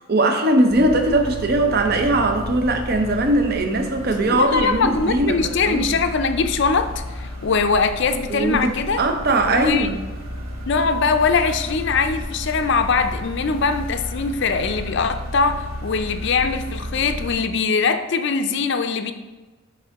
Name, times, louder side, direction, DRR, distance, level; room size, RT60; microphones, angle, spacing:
voice 1, 0.1-5.9 8.3-8.7 9.0-10.0, right 1 dB, 45° right, 5 dB, 0.6 m, -20 dB
sound 1, 0.7-17.4, equal, 70° right, 1.2 m, -32 dB
voice 2, 4.3-9.0 9.4-9.9 10.7-19.1, left 4 dB, 50° left, 8 dB, 0.4 m, -22 dB
9.6 x 3.7 x 3.5 m, 1.2 s
head